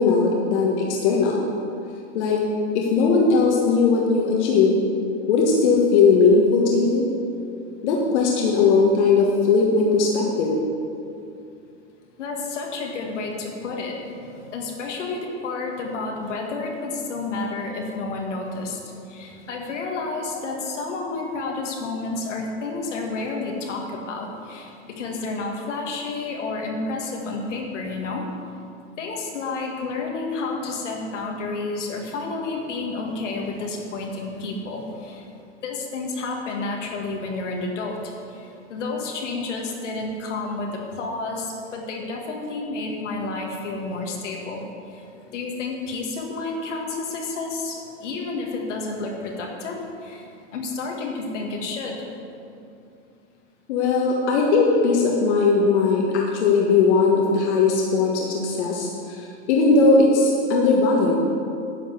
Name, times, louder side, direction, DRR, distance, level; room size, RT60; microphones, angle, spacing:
voice 1, 0.0-1.4 2.1-2.4 2.7-4.8 5.3-7.0 7.8-10.6 53.7-61.2, left 4 dB, 70° left, -1 dB, 1.6 m, -19 dB
voice 2, 12.2-28.3 29.0-35.3 35.6-45.0 45.3-52.2, left 3 dB, 85° left, 0 dB, 1.9 m, -30 dB
10.0 x 5.3 x 7.8 m, 2.5 s
hypercardioid pair, 120°, 35 cm